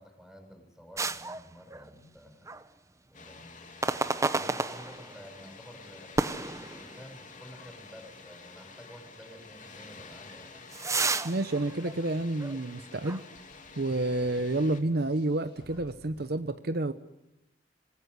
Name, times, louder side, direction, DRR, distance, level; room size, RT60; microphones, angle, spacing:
voice 1, 0.0-2.8 3.1-6.1 6.7-10.5, equal, ahead, 4 dB, 6.7 m, -51 dB
sound 1, 1.0-2.2 2.5-2.7 3.8-5.3 6.2-7.3 7.8-7.9 8.5-8.6 10.0-12.7 13.0-13.2, right 3 dB, 20° right, 0.8 m, -32 dB
Water, 3.1-14.8, left 4 dB, 45° left, 3.2 m, -50 dB
voice 2, 11.2-13.2 13.8-16.9, right 2 dB, 60° right, 10 dB, 0.9 m, -29 dB
sound 2, 11.3-16.3, left 1 dB, 85° left, 6.3 m, -59 dB
26.5 x 20.0 x 9.8 m, 0.95 s
head